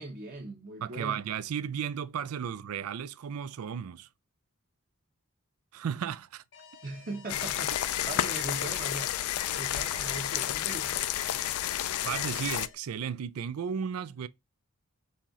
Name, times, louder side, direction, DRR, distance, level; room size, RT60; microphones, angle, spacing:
voice 1, 0.0-1.2 6.8-9.1 9.5-11.1, right 2 dB, 40° right, 0.9 m, -40 dB
voice 2, 0.8-4.1 5.7-6.4 12.0-14.3, right 7 dB, 75° right, 0.4 m, -34 dB
Alarm, 6.5-12.7, left 4 dB, 55° left, 0.8 m, -52 dB
sound 1, 7.3-12.7, left 12 dB, 75° left, 0.4 m, -31 dB
4.2 x 3.0 x 3.6 m
head